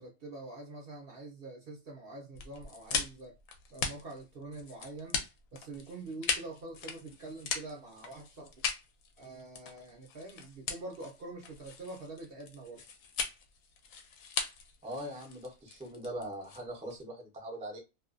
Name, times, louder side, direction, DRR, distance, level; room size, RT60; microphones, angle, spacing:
voice 1, 0.0-3.4 3.7-5.2 5.5-8.6 9.2-12.8, right 2 dB, 55° right, 0.7 m, -45 dB
sound 1, 2.3-17.0, left 6 dB, 75° left, 1.0 m, -39 dB
voice 2, 14.8-17.8, right 1 dB, 10° right, 0.5 m, -41 dB
2.5 x 2.3 x 2.4 m
omnidirectional pair, 1.4 m